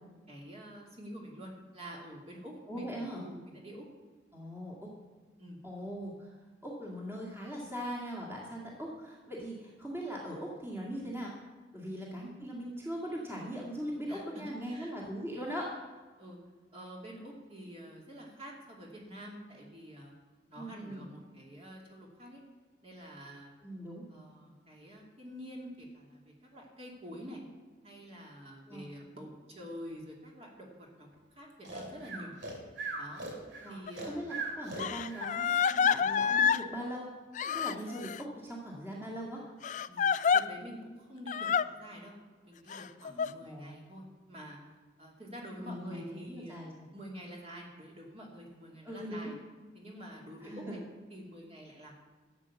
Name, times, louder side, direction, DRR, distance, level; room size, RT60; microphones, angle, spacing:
voice 1, 0.3-3.9 5.4-5.6 14.1-14.9 16.2-16.4 16.7-20.1 20.5-22.4 22.8-23.5 24.1-27.4 27.8-32.3 32.9-33.3 33.7-34.3 39.9-42.1 42.4-44.6 45.0-46.6 46.9-49.3 49.7-50.8 51.1-51.9, equal, 30° right, -1 dB, 2.4 m, -47 dB
voice 2, 2.7-3.3 4.3-4.9 5.6-6.3 6.6-11.3 11.7-15.7 20.5-21.1 23.6-24.0 28.7-28.9 33.6-33.7 34.0-37.2 37.5-39.5 43.4-43.7 45.6-46.9 48.8-49.3 50.4-50.9, equal, 10° right, -4 dB, 2.1 m, -40 dB
Breathing, 31.6-35.3, right 3 dB, 70° right, 2.5 m, -40 dB
Crying sobbing, 33.9-34.0 34.8-36.6 37.4-38.2 39.6-40.4 41.3-41.7 42.7-43.3, left 7 dB, 40° left, 0.4 m, -28 dB
13.5 x 8.3 x 7.0 m, 1.4 s
head